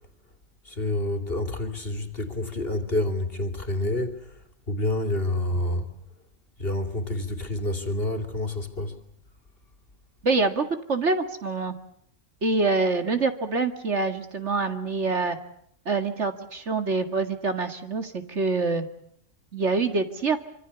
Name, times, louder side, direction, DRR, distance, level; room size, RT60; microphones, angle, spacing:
voice 1, 0.6-4.2 4.7-5.9 6.6-9.0, left 1 dB, 45° left, 3.0 m, -28 dB
voice 2, 10.2-10.6 10.9-11.7 12.4-15.4 15.9-18.9 19.5-20.4, right 3 dB, 55° right, 2.4 m, -25 dB
26.0 x 25.5 x 7.0 m
omnidirectional pair, 1.4 m